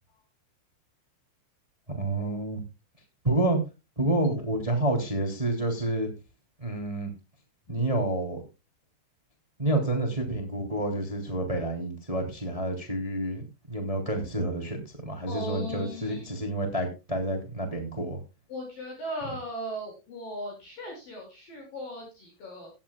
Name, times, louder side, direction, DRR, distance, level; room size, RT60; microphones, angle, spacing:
voice 1, 1.9-2.6 3.2-3.6 4.0-6.1 6.6-7.1 7.7-8.4 9.6-14.8 15.0-18.2, right 1 dB, 10° right, 5 dB, 2.0 m, -29 dB
voice 2, 15.3-16.3 18.5-22.7, equal, 45° left, 0 dB, 7.9 m, -37 dB
16.5 x 11.5 x 2.4 m, 0.28 s
omnidirectional pair, 5.8 m